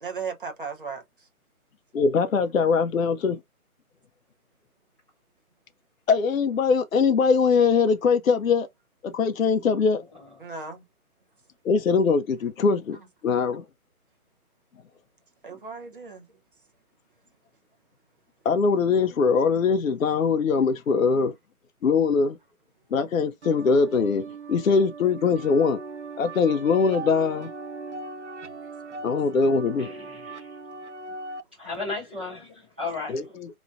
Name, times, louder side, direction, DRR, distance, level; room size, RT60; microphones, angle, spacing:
voice 1, 0.0-1.0 10.4-10.8 15.4-16.3, right 5 dB, 35° right, 0.9 m, -35 dB
voice 2, 1.9-3.4 6.1-8.7 9.0-10.0 11.6-13.0 13.2-13.6 18.4-21.3 21.8-22.4 22.9-25.8 26.2-27.5 29.0-29.9 33.1-33.5, left 5 dB, 65° left, 0.6 m, -22 dB
sound 1, 23.4-31.4, right 4 dB, 55° right, 0.5 m, -39 dB
voice 3, 29.8-30.5 31.6-33.4, left 3 dB, 5° right, 0.8 m, -35 dB
4.8 x 3.0 x 2.5 m
hypercardioid pair, 170°, 44 cm